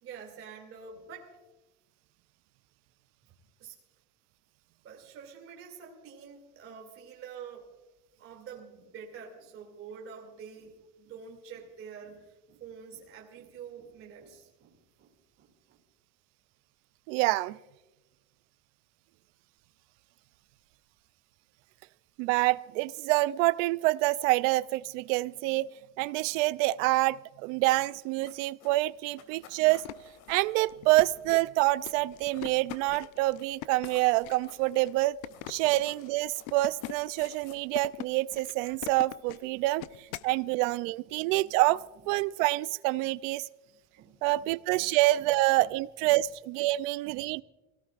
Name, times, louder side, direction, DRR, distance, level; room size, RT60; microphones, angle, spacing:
voice 1, 0.0-1.4 3.3-3.4 3.6-3.8 4.8-7.7 8.2-15.8 29.1-29.6 35.3-35.8 39.8-39.9 40.2-41.5 43.0-43.2 43.6-45.7 46.0-46.2 46.6-47.4, right 6 dB, 35° right, 0 dB, 2.6 m, -48 dB
voice 2, 17.1-17.6 22.2-25.7 26.0-29.8 30.3-35.2 35.5-39.8 40.2-41.8 42.1-43.5 44.2-47.4, right 19 dB, 85° right, 18 dB, 0.5 m, -27 dB
sound 1, 27.8-31.4 31.7-32.0 32.2-33.1 33.4-33.5 33.8-34.9 35.3-37.6, left 8 dB, 55° left, 2.2 m, -54 dB
sound 2, 29.6-40.4, left 16 dB, 70° left, 0.7 m, -43 dB
24.5 x 18.0 x 2.5 m, 1.1 s
cardioid pair, 165°, 37 cm